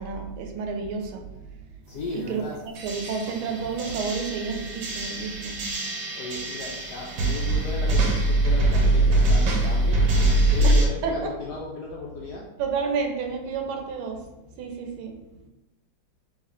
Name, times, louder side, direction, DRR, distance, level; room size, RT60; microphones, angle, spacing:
voice 1, 0.0-5.7 10.6-11.3 12.6-15.5, right 5 dB, 85° right, 4 dB, 1.4 m, -31 dB
voice 2, 1.9-2.6 6.1-10.0 10.5-12.4, left 3 dB, 80° left, -3 dB, 0.9 m, -36 dB
sound 1, 2.8-10.9, right 1 dB, 65° right, 1.2 m, -23 dB
3.2 x 3.1 x 3.6 m, 0.99 s
omnidirectional pair, 2.2 m